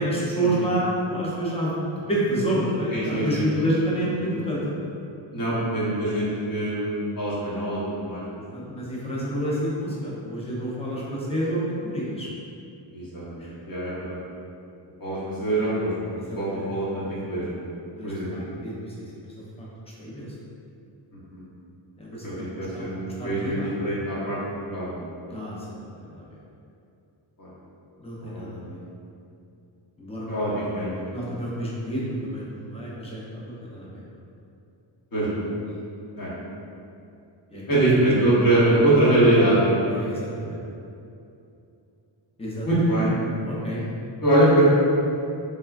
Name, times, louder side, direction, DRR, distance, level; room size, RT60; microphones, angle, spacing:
voice 1, 0.0-1.7 2.1-4.6 8.5-12.3 13.4-13.5 16.3-16.6 17.0-17.1 18.0-18.7 19.2-19.4 20.0-20.3 22.0-22.4 22.7-22.9 23.2-23.7 25.3-26.2 28.0-28.8 30.0-30.6 31.1-32.4 32.7-33.9 37.5-37.6 39.9-40.6 42.4-42.7 43.4-43.8, right 1 dB, 15° left, -6 dB, 0.5 m, -29 dB
voice 2, 2.9-3.4 4.0-4.1 5.3-8.4 12.9-14.2 15.0-17.6 18.0-18.3 21.3-21.4 22.2-24.4 24.6-25.0 27.4-27.5 28.2-28.7 30.3-30.9 35.1-35.4 36.1-36.3 37.7-39.8 42.6-43.1 44.2-44.6, right 1 dB, 45° left, -10 dB, 1.0 m, -23 dB
3.3 x 2.1 x 2.3 m, 2.7 s
cardioid pair, 105°, 48 cm